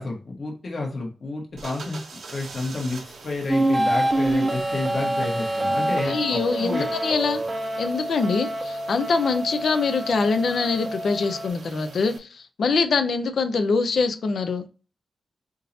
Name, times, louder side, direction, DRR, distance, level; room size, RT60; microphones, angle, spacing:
voice 1, 0.0-6.8, left 2 dB, 50° left, -1 dB, 1.3 m, -30 dB
sound 1, 1.6-12.2, right 4 dB, 75° right, 0.9 m, -43 dB
sound 2, 3.5-11.5, right 1 dB, 30° right, 0.6 m, -26 dB
voice 2, 6.0-7.4 7.8-14.7, left 4 dB, 70° left, 8 dB, 0.7 m, -24 dB
4.1 x 3.7 x 2.7 m, 0.34 s
wide cardioid pair, 105°, 0 cm